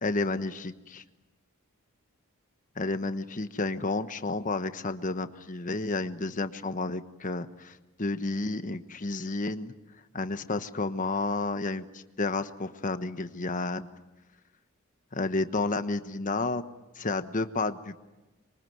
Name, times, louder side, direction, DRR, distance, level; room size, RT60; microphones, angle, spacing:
voice 1, 0.0-1.0 2.8-9.7 10.1-13.9 15.1-16.6 17.0-18.0, left 3 dB, 35° left, 10 dB, 1.2 m, -31 dB
26.0 x 23.5 x 9.4 m, 1.1 s
head